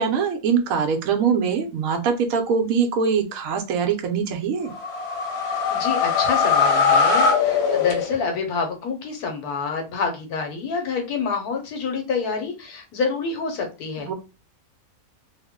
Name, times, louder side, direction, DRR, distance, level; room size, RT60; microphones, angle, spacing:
voice 1, 0.0-4.7 14.0-14.1, right 6 dB, 70° right, 5 dB, 1.0 m, -23 dB
sound 1, 4.7-8.5, left 5 dB, 55° left, 0.9 m, -21 dB
voice 2, 5.4-14.1, left 5 dB, 85° left, 4 dB, 1.3 m, -27 dB
3.0 x 2.0 x 3.5 m, 0.28 s
omnidirectional pair, 1.6 m